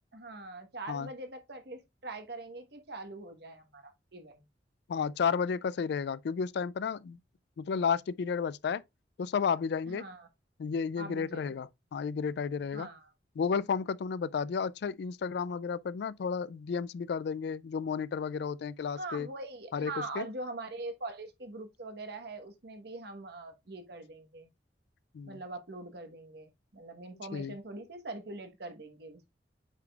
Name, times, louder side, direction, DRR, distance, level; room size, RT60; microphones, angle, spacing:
voice 1, 0.0-4.4 9.9-10.3 11.0-11.6 12.7-13.1 18.9-24.5 25.2-29.3, right 2 dB, 65° right, 1.2 m, -43 dB
voice 2, 4.9-7.2 7.6-8.8 9.2-10.0 10.6-12.9 13.4-19.3 19.7-20.3 25.1-25.4 27.3-27.5, left 6 dB, 65° left, 0.3 m, -32 dB
8.3 x 4.9 x 2.3 m
head